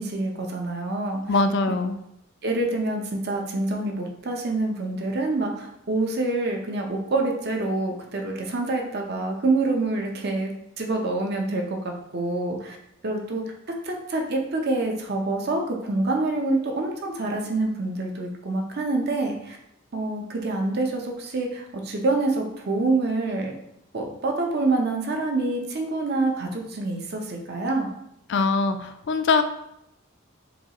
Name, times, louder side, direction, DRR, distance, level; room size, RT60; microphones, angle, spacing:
voice 1, 0.0-1.2 2.4-10.5 10.8-12.8 13.0-13.4 13.8-19.6 19.9-23.5 23.9-27.9, right 2 dB, 55° right, 1 dB, 0.7 m, -26 dB
voice 2, 1.3-2.0 28.3-29.4, left 3 dB, 60° left, 8 dB, 0.4 m, -22 dB
6.9 x 2.4 x 2.9 m, 0.80 s
head